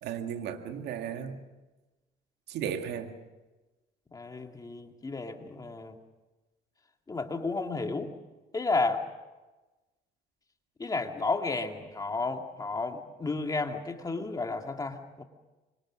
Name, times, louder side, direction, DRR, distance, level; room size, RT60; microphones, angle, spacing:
voice 1, 0.0-1.4 2.5-3.2 14.2-14.3, right 8 dB, 80° right, 2.1 m, -35 dB
voice 2, 4.1-6.0 7.1-8.1 8.5-9.0 10.8-15.2, left 3 dB, 20° left, 2.1 m, -32 dB
25.5 x 24.5 x 6.3 m
cardioid pair, 110°, 17 cm